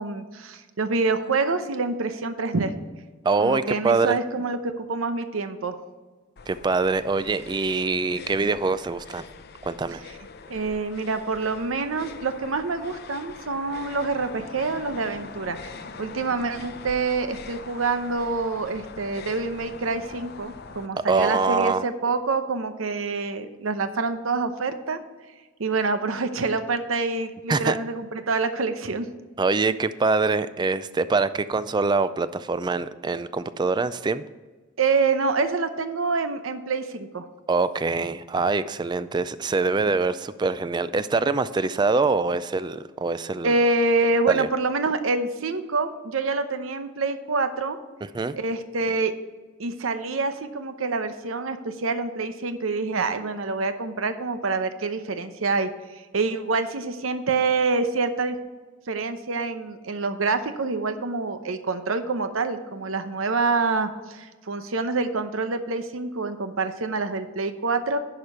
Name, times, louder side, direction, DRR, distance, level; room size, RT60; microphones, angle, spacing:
voice 1, 0.0-2.7 3.4-5.8 10.5-15.7 16.0-25.0 25.6-29.1 34.8-37.3 43.4-47.8 48.3-49.1 49.6-55.7 56.1-58.4 58.9-68.0, right 3 dB, 90° right, 9 dB, 0.8 m, -26 dB
voice 2, 3.2-4.2 6.5-9.2 9.6-10.0 21.1-21.8 27.5-27.8 29.4-34.2 37.5-43.5 44.3-44.5 48.0-48.4, right 4 dB, 20° right, 14 dB, 0.3 m, -24 dB
sound 1, 6.4-20.9, left 4 dB, 55° left, 0.6 m, -43 dB
10.5 x 5.1 x 5.8 m, 1.3 s
head